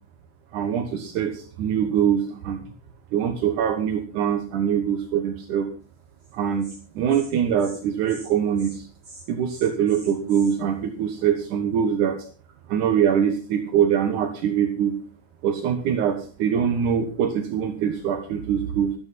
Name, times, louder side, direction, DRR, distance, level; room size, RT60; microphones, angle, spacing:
voice 1, 0.5-2.6 3.1-5.7 6.3-6.7 7.0-8.9 9.3-12.2 12.7-15.0 15.4-18.9, right 8 dB, 80° right, 6 dB, 2.7 m, -23 dB
Insect, 6.2-6.3 6.6-6.8 7.1-7.3 7.6-7.8 8.1-8.3 8.6-8.8 9.0-10.6, right 2 dB, 35° right, 5.3 m, -45 dB
14.5 x 13.0 x 4.2 m, 0.39 s
omnidirectional pair, 3.5 m